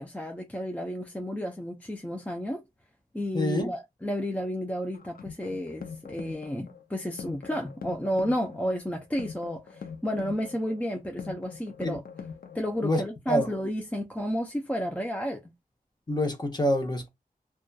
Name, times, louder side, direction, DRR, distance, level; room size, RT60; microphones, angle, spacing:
voice 1, 0.0-2.6 3.1-12.0 12.5-15.4, equal, 10° left, 0.4 m, -32 dB
voice 2, 3.3-3.7 11.8-12.0 12.8-13.0 13.3-13.5 16.1-17.1, left 1 dB, 30° left, 0.8 m, -26 dB
sound 1, 4.9-12.9, left 6 dB, 70° left, 0.5 m, -43 dB
2.6 x 2.2 x 2.3 m
wide cardioid pair, 75°, 15 cm